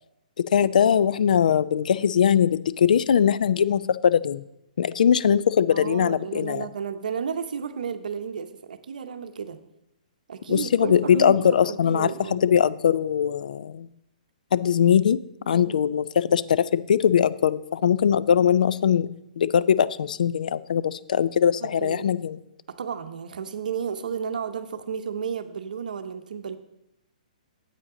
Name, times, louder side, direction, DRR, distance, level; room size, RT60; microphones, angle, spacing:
voice 1, 0.4-4.4 4.8-6.7 10.5-13.9 14.5-15.2 15.5-19.1 19.4-22.4, left 8 dB, 75° left, 17 dB, 0.4 m, -21 dB
voice 2, 5.7-9.6 10.3-11.4 11.7-12.4 15.5-15.8 21.6-22.1 22.7-26.6, right 7 dB, 75° right, 9 dB, 0.8 m, -32 dB
9.0 x 8.4 x 3.7 m, 0.87 s
hypercardioid pair, 155°, 4 cm